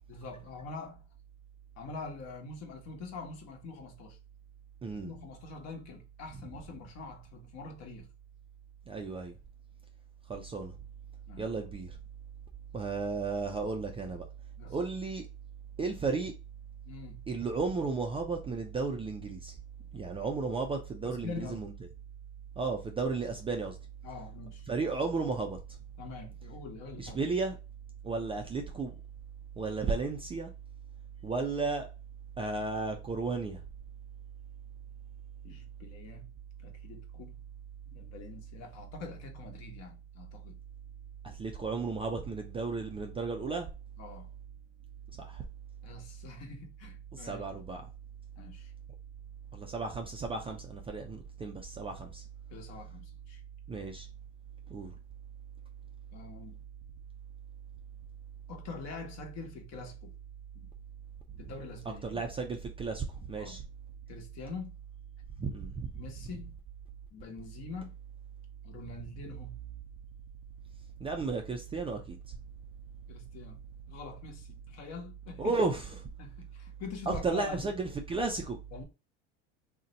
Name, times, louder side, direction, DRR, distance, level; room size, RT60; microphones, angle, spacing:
voice 1, 0.1-1.0 1.8-4.2 5.0-8.1 11.3-11.5 14.6-14.8 16.9-17.2 21.0-21.7 24.0-24.7 26.0-27.2 35.4-37.4 37.8-40.6 44.0-44.3 45.8-47.4 48.4-48.7 52.5-53.4 56.1-56.6 58.5-60.1 60.5-60.7 61.4-62.2 63.4-63.6 64.1-64.8 65.9-66.6 67.1-68.0 68.6-69.6 73.1-73.6 73.9-75.6 76.2-77.7 78.7-78.8, left 4 dB, 50° left, 1.0 m, -44 dB
voice 2, 4.8-5.1 8.9-9.4 10.3-10.7 11.4-12.0 12.7-14.3 14.7-15.3 15.8-16.3 17.3-19.5 19.9-21.7 22.6-23.8 24.7-25.6 27.0-27.6 28.0-28.9 29.6-30.5 31.2-31.9 32.4-33.6 41.2-43.7 45.2-45.4 47.1-47.8 49.5-52.2 53.7-54.1 54.7-54.9 62.0-63.6 65.4-65.9 71.0-72.2 75.4-75.8 77.1-78.6, right 4 dB, 15° right, 0.4 m, -34 dB
2.6 x 2.1 x 3.9 m
supercardioid pair, 100°, 34 cm